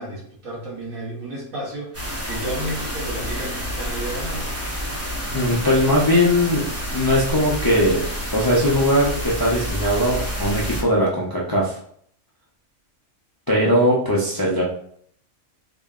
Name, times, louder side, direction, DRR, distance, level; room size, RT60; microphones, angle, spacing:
voice 1, 0.0-4.5, right 1 dB, 85° right, -5 dB, 1.8 m, -32 dB
sound 1, 1.9-10.8, equal, 15° right, 0.7 m, -29 dB
voice 2, 5.3-8.0 8.3-11.8 13.5-14.6, equal, 30° left, -4 dB, 0.4 m, -20 dB
3.8 x 2.1 x 3.6 m, 0.63 s
omnidirectional pair, 1.4 m